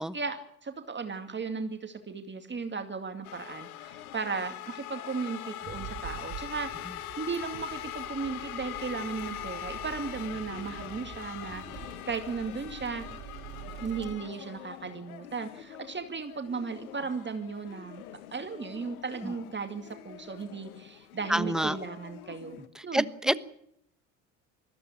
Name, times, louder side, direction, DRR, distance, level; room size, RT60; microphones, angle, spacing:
voice 1, 0.0-6.7 7.2-13.0 13.8-18.0 18.3-23.4, right 5 dB, 25° right, 6 dB, 2.3 m, -36 dB
sound 1, 3.2-22.7, left 12 dB, 85° left, 1.3 m, -43 dB
sound 2, 5.6-14.2, right 11 dB, 55° right, 2.7 m, -46 dB
voice 2, 21.3-21.8 22.7-23.4, right 1 dB, ahead, 14 dB, 1.2 m, -28 dB
20.5 x 14.5 x 9.7 m, 0.72 s
hypercardioid pair, 65°, 42 cm